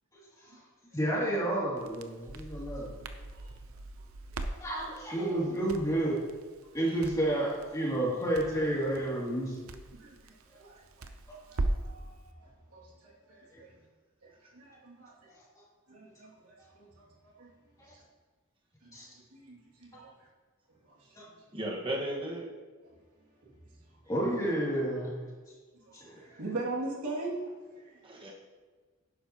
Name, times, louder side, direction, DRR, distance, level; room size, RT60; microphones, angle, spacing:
voice 1, 0.9-2.9 4.6-6.2 6.7-9.6 18.9-19.1 24.1-25.1 25.9-26.2, right 1 dB, 15° left, -6 dB, 2.8 m, -30 dB
Crackle, 1.8-12.0, right 2 dB, 70° right, 0.7 m, -40 dB
voice 2, 4.3-4.7 9.9-11.1 11.5-13.9 14.2-15.3 15.9-17.5 17.8-18.0 18.8-20.3 20.8-21.5 23.7-23.8 25.9-28.2, right 2 dB, 90° right, -4 dB, 2.6 m, -43 dB
voice 3, 21.5-22.5 28.0-28.3, right 1 dB, 25° right, -2 dB, 1.7 m, -35 dB
11.5 x 10.0 x 3.0 m, 1.4 s
head